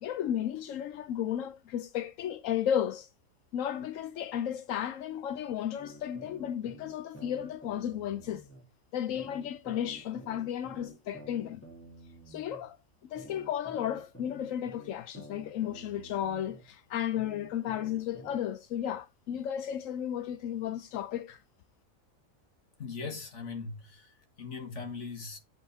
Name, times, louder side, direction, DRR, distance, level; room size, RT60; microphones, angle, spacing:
voice 1, 0.0-3.1 3.5-8.5 8.9-11.6 12.3-12.8 13.0-21.4, left 10 dB, 85° left, 1.0 m, -34 dB
sound 1, 5.8-8.6 9.1-12.6 13.1-16.6 17.1-18.4, right 1 dB, 10° left, 2.4 m, -50 dB
voice 2, 22.8-25.4, left 4 dB, 65° left, 2.0 m, -40 dB
7.9 x 5.5 x 4.7 m
omnidirectional pair, 1.3 m